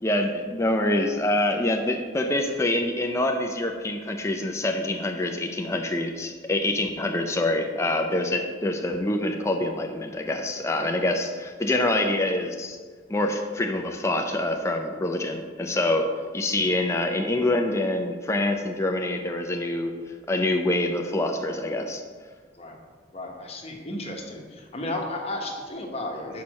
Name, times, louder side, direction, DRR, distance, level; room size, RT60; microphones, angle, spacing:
voice 1, 0.0-12.8 13.1-20.0 20.3-22.0, left 1 dB, 15° left, 3 dB, 0.4 m, -26 dB
voice 2, 23.1-26.4, left 1 dB, 35° left, 1 dB, 1.0 m, -33 dB
5.7 x 4.5 x 6.2 m, 1.5 s
head